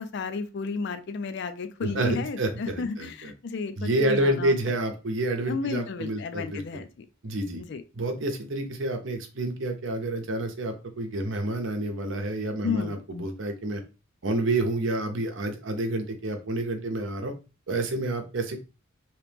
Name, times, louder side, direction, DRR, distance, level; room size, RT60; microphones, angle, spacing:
voice 1, 0.0-4.6 5.5-7.0 7.7-7.8 12.6-13.0, left 4 dB, 55° left, 11 dB, 0.4 m, -32 dB
voice 2, 1.8-3.3 3.8-6.6 7.2-7.6 8.0-13.8 14.2-17.3 17.7-18.7, right 1 dB, 65° right, 5 dB, 0.7 m, -29 dB
2.9 x 2.9 x 3.4 m, 0.31 s
head